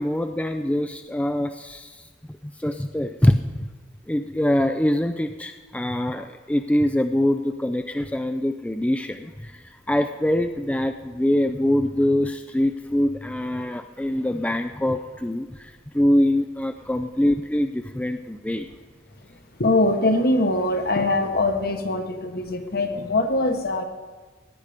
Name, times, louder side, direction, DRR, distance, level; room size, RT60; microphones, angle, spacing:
voice 1, 0.0-2.1 2.4-3.7 4.1-18.7, left 1 dB, 5° left, 7 dB, 0.4 m, -24 dB
voice 2, 19.6-23.8, left 2 dB, 55° left, 6 dB, 1.3 m, -22 dB
17.0 x 9.8 x 5.0 m, 1.3 s
head